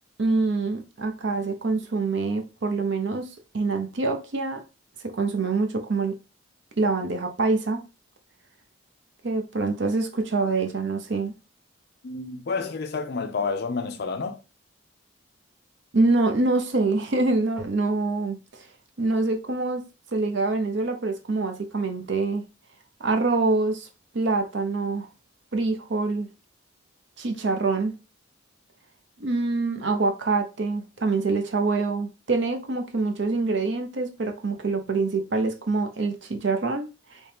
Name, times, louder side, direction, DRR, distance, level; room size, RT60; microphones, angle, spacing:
voice 1, 0.2-3.3 3.5-4.6 5.0-6.1 6.8-7.8 9.2-11.3 15.9-18.4 19.0-19.8 20.1-22.4 23.0-23.9 24.1-25.1 25.5-26.3 27.2-27.9 29.2-36.9, right 3 dB, 55° right, 0.6 m, -25 dB
voice 2, 12.0-14.4, left 4 dB, 50° left, 0.4 m, -29 dB
3.1 x 2.7 x 3.3 m
head